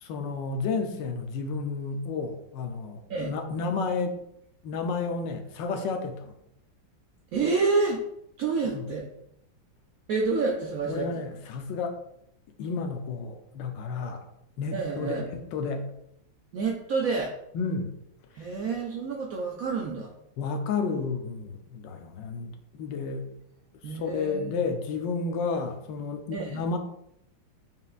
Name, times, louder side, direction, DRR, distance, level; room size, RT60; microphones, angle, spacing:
voice 1, 0.0-4.2 4.6-6.3 8.7-8.8 10.9-12.0 12.6-14.3 14.6-15.9 17.5-17.9 20.4-23.3 23.8-26.8, left 4 dB, 75° left, 5 dB, 1.2 m, -31 dB
voice 2, 7.3-8.0 8.4-9.1 10.1-11.1 14.7-15.2 16.5-17.3 18.3-20.1 23.8-24.5 26.3-26.6, right 4 dB, 75° right, 0 dB, 0.8 m, -28 dB
5.5 x 3.6 x 2.4 m, 0.77 s
omnidirectional pair, 2.1 m